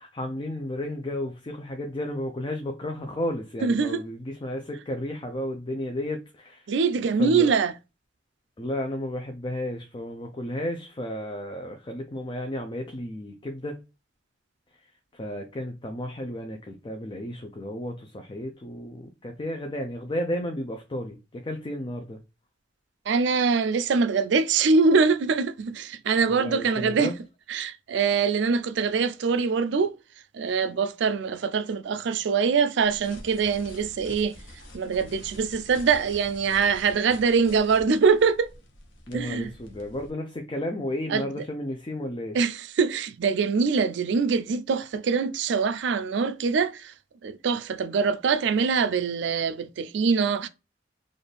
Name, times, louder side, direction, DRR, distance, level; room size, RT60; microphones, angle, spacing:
voice 1, 0.0-6.7 7.2-7.5 8.6-13.8 15.1-22.2 26.3-27.1 39.1-42.4, left 1 dB, 25° left, 0.5 m, -33 dB
voice 2, 3.6-4.0 6.7-7.7 23.1-27.1 27.5-29.9 30.3-34.4 34.7-38.5 39.1-39.5 41.1-41.3 42.3-46.9 47.2-50.5, right 5 dB, 65° right, 0.4 m, -23 dB
sound 1, 32.8-40.1, left 1 dB, 75° left, 1.0 m, -47 dB
4.1 x 2.5 x 3.3 m
head